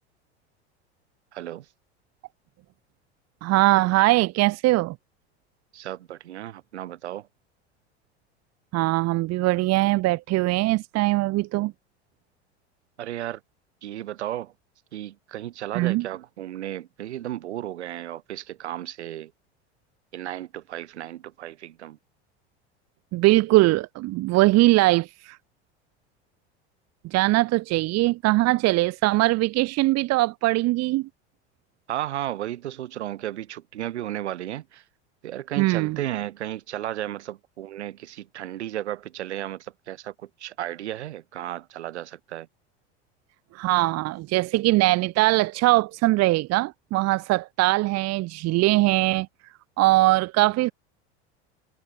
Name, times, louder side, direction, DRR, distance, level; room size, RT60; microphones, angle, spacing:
voice 1, 1.3-1.6 5.7-7.2 13.0-13.4 13.8-14.5 14.9-19.3 20.1-22.0 31.9-34.8 35.2-40.1 40.4-42.5, right 13 dB, 80° right, 4.0 m, -34 dB
voice 2, 3.4-4.9 8.7-11.7 15.7-16.1 23.1-25.4 27.0-31.1 35.6-36.0 43.5-49.3 49.8-50.7, right 19 dB, 50° right, 1.4 m, -21 dB
hypercardioid pair, 85°, 34 cm